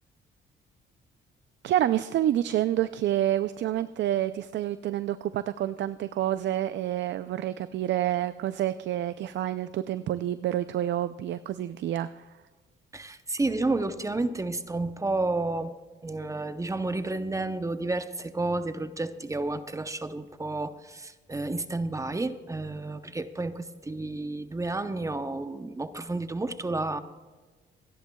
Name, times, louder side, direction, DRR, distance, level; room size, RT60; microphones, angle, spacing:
voice 1, 1.6-12.2, right 12 dB, 65° right, 13 dB, 0.5 m, -28 dB
voice 2, 12.9-15.7 16.0-27.0, right 2 dB, 15° right, 11 dB, 0.7 m, -31 dB
28.0 x 10.5 x 2.3 m, 1.4 s
cardioid pair, 90°, 20 cm